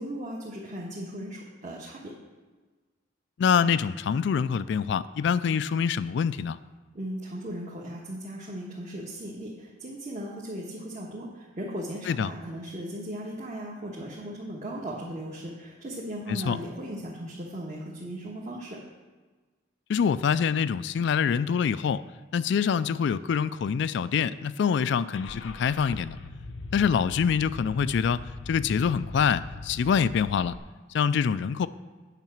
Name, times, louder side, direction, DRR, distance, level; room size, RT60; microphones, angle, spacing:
voice 1, 0.0-2.1 6.9-18.8, right 1 dB, 40° right, -4 dB, 1.3 m, -37 dB
voice 2, 3.4-6.6 12.1-12.3 16.3-16.6 19.9-22.0 22.3-26.2 26.7-30.5 30.9-31.7, left 7 dB, 65° left, 15 dB, 0.3 m, -25 dB
Car / Engine starting, 25.1-30.6, left 3 dB, 85° left, 0.7 m, -41 dB
9.1 x 5.8 x 7.2 m, 1.3 s
head